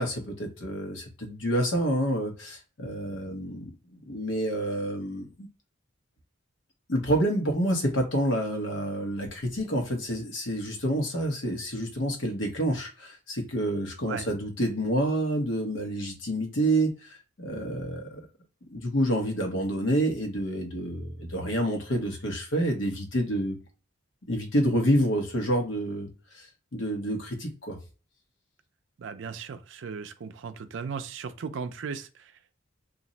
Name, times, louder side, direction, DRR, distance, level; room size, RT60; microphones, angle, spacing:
voice 1, 0.0-5.5 6.9-18.3 18.7-23.6 24.3-26.1 26.3-26.5 26.7-27.8, right 1 dB, 70° left, 0.9 m, -28 dB
voice 2, 29.0-32.4, right 5 dB, 70° right, 0.4 m, -37 dB
2.5 x 2.0 x 3.8 m
head